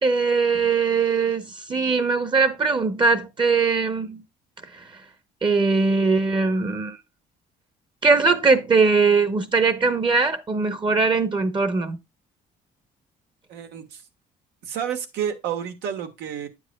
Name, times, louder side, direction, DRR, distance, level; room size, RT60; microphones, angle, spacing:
voice 1, 0.0-4.2 4.6-5.0 5.4-7.0 8.0-12.0, right 4 dB, 30° right, 0.9 m, -21 dB
voice 2, 13.5-14.0 14.6-16.5, right 8 dB, 85° right, 1.5 m, -30 dB
8.9 x 8.0 x 2.3 m
cardioid pair, 110°, 17 cm